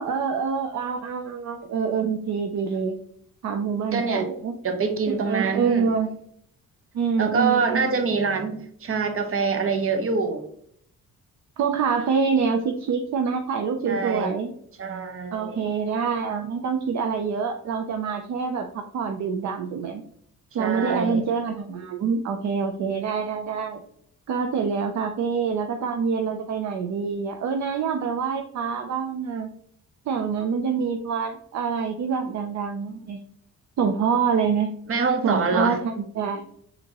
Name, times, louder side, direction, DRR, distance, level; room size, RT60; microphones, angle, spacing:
voice 1, 0.0-2.9 3.4-4.5 5.1-6.1 6.9-8.0 11.6-14.5 15.3-20.0 20.5-23.8 24.3-29.5 30.1-33.2 33.8-34.7 35.2-36.4, right 6 dB, 55° right, 5 dB, 0.5 m, -26 dB
voice 2, 3.9-4.3 4.6-5.9 7.2-10.4 13.8-14.3 14.8-15.7 20.6-21.2 34.9-35.8, right 4 dB, 40° right, 7 dB, 0.9 m, -25 dB
5.0 x 2.9 x 2.9 m, 0.67 s
cardioid pair, 75°, 33 cm